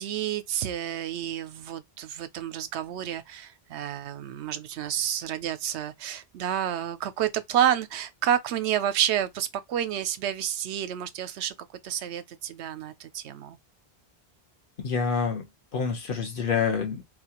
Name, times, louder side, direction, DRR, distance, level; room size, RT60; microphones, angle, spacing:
voice 1, 0.0-11.5 11.8-13.6, right 10 dB, 85° right, 0.9 m, -29 dB
voice 2, 14.8-15.5 15.7-17.0, left 5 dB, 55° left, 1.2 m, -27 dB
4.1 x 2.4 x 2.9 m
omnidirectional pair, 1.1 m